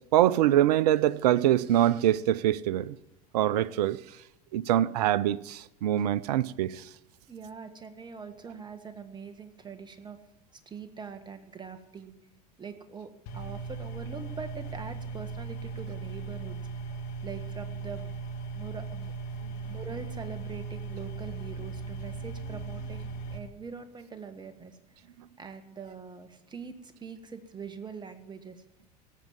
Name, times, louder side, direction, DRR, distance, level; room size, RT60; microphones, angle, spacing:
voice 1, 0.1-2.9 3.3-4.0 4.5-6.8, right 12 dB, 75° right, 0.5 m, -24 dB
voice 2, 7.3-10.2 10.5-12.1 12.6-18.1 18.5-19.1 19.6-25.0 25.4-28.6, right 5 dB, 20° right, 1.7 m, -43 dB
sound 1, 13.3-23.4, right 4 dB, 65° left, 2.0 m, -38 dB
17.5 x 7.5 x 7.3 m
hypercardioid pair, 80°, 21 cm